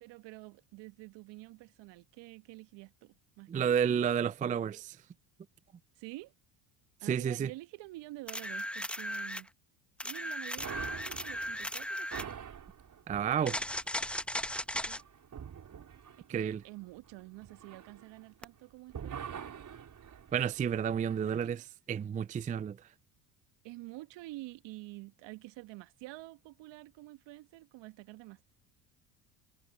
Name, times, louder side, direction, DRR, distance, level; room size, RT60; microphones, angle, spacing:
voice 1, 0.0-3.8 6.0-6.3 7.0-9.5 10.0-12.3 14.9-15.0 16.1-19.4 21.2-21.5 23.6-28.4, right 20 dB, 60° right, 1.6 m, -48 dB
voice 2, 3.5-5.0 7.0-7.5 13.1-13.6 16.3-16.6 20.3-22.8, right 8 dB, 15° right, 0.4 m, -31 dB
sound 1, 8.3-9.5 10.0-12.3 13.5-15.0 18.4-18.5, left 1 dB, ahead, 1.1 m, -37 dB
sound 2, 10.6-18.6 18.9-21.2, right 8 dB, 40° right, 4.5 m, -46 dB
hypercardioid pair, 65°, 48 cm